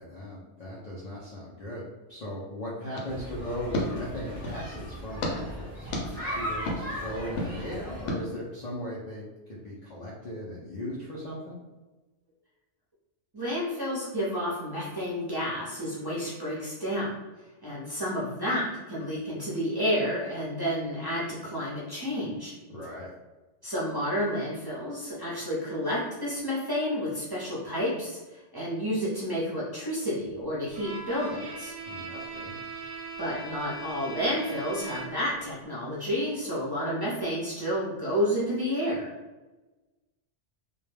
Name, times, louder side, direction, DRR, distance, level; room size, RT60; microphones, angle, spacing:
voice 1, 0.0-5.9 6.3-11.6 22.7-23.1 31.9-32.5, left 1 dB, 55° left, -6 dB, 0.5 m, -38 dB
sound 1, 2.9-4.7 5.2-5.3 5.9-6.0 6.7-6.8 7.4-7.5 8.1-8.2, left 1 dB, 85° left, 0.9 m, -32 dB
sound 2, 3.1-8.1, equal, 10° right, 0.9 m, -37 dB
voice 2, 13.3-17.1 17.6-22.5 23.6-31.7 33.2-39.1, equal, 25° right, -9 dB, 0.6 m, -30 dB
Bowed string instrument, 30.7-35.4, right 3 dB, 65° right, 0.7 m, -40 dB
2.2 x 2.1 x 3.2 m, 1.2 s
omnidirectional pair, 1.2 m